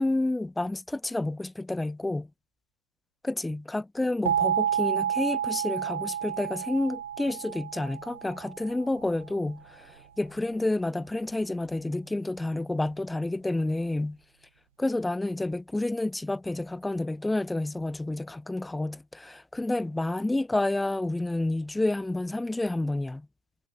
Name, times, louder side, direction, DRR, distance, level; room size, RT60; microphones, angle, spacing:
voice 1, 0.0-2.3 3.2-14.2 14.8-23.3, left 2 dB, 5° left, 0.8 m, -29 dB
sound 1, 4.3-9.0, right 9 dB, 65° right, 0.4 m, -30 dB
figure-of-eight pair, 90°, 0 cm